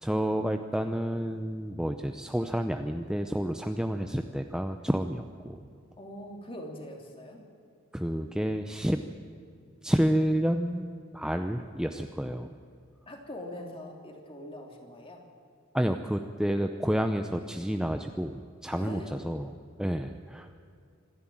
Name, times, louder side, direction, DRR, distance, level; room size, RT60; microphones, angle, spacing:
voice 1, 0.0-5.6 7.9-9.0 9.8-12.5 15.7-19.5 19.8-20.5, equal, 5° right, 6 dB, 0.7 m, -29 dB
voice 2, 6.0-7.4 13.1-15.2 18.7-19.1, left 1 dB, 25° left, 1 dB, 3.3 m, -42 dB
26.0 x 11.0 x 8.9 m, 2.4 s
head